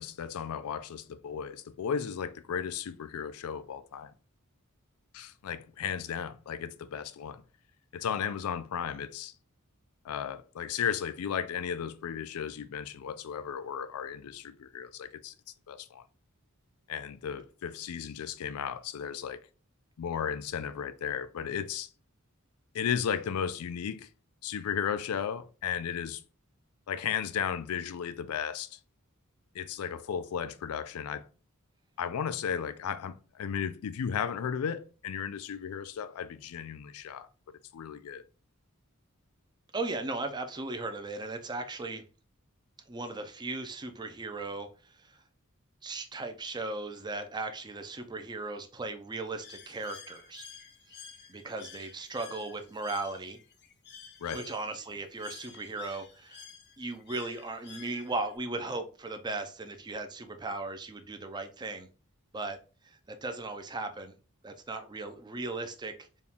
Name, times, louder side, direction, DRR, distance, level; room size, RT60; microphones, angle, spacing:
voice 1, 0.0-4.1 5.1-7.4 7.9-9.3 10.0-15.3 15.7-16.0 16.9-19.4 20.0-21.9 22.7-24.1 24.4-26.2 26.9-28.8 29.5-31.3 32.0-37.3 37.7-38.2 54.2-54.5, left 8 dB, 90° left, 0.4 m, -35 dB
voice 2, 39.7-42.0 42.9-45.2 45.8-50.4 51.3-53.4 54.3-56.4 56.8-61.9 62.3-62.6 62.8-64.2 64.4-66.2, right 2 dB, 20° right, 0.5 m, -37 dB
Bird, 49.4-58.4, left 7 dB, 50° left, 0.7 m, -51 dB
4.2 x 2.3 x 3.5 m
head